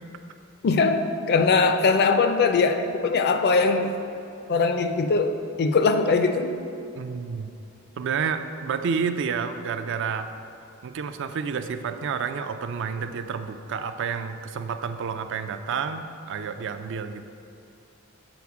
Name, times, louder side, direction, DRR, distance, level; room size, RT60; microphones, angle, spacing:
voice 1, 0.6-3.9 4.5-6.5, left 4 dB, 50° left, 8 dB, 0.4 m, -21 dB
voice 2, 7.0-7.5 8.0-10.3 10.8-17.2, right 6 dB, 60° right, 9 dB, 0.4 m, -30 dB
7.0 x 4.3 x 4.7 m, 2.7 s
head